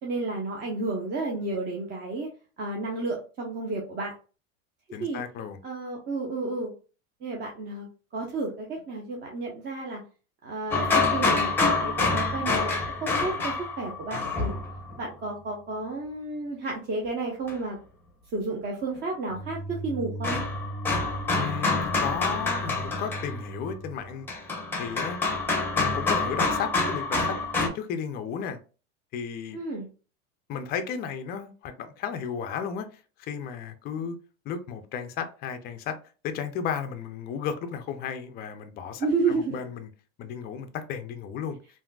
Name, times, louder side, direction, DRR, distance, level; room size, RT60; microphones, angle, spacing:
voice 1, 0.0-2.3 2.6-4.1 5.0-5.2 5.6-6.7 7.2-7.9 8.1-10.0 10.4-14.5 15.0-17.8 18.3-20.4 29.5-29.9 39.0-39.5, right 3 dB, 25° right, 0.6 m, -31 dB
voice 2, 4.9-5.6 21.3-24.3 24.8-25.2 25.7-28.6 29.1-29.6 30.5-34.2 34.5-36.0 36.2-39.9 40.2-41.6, left 7 dB, 25° left, 0.3 m, -34 dB
sound 1, 10.7-15.0 17.5-17.6 19.3-27.7, left 3 dB, 5° left, 0.7 m, -27 dB
3.5 x 2.6 x 2.2 m
supercardioid pair, 115°, 40 cm